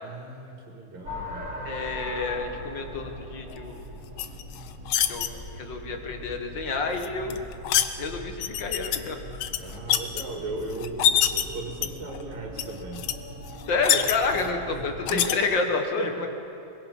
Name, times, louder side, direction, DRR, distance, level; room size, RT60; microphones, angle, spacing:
voice 1, 0.0-1.5 9.6-13.1 14.3-15.4 15.6-16.3, right 3 dB, 70° right, 0 dB, 3.3 m, -38 dB
sound 1, 1.0-15.3, left 1 dB, 15° right, 6.1 m, -41 dB
voice 2, 1.6-3.8 5.1-5.3 5.5-7.4 8.0-9.2 13.7-16.3, left 4 dB, 50° left, 4 dB, 1.7 m, -29 dB
sound 2, 4.2-5.3 7.0-7.9 8.4-9.0 9.3-10.2 10.8-11.4 11.8-12.2 12.6-12.7 12.9-13.1 13.5-14.5 15.1-15.3, left 10 dB, 85° left, 1.1 m, -24 dB
22.5 x 22.0 x 5.5 m, 2.7 s
omnidirectional pair, 3.3 m